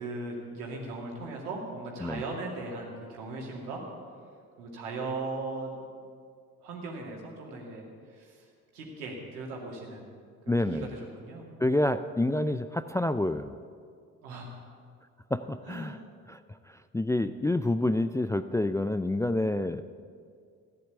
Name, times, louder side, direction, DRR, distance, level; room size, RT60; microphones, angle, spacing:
voice 1, 0.0-3.8 4.6-5.8 6.6-10.1 10.4-11.5 14.2-14.8 15.6-15.9, right 3 dB, 80° right, -1 dB, 2.6 m, -38 dB
voice 2, 10.5-10.9 11.6-13.5 15.3-16.0 16.3-16.4 16.7-19.8, left 1 dB, 5° left, 11 dB, 0.4 m, -28 dB
14.5 x 9.8 x 8.3 m, 2.1 s
figure-of-eight pair, 50°, 44 cm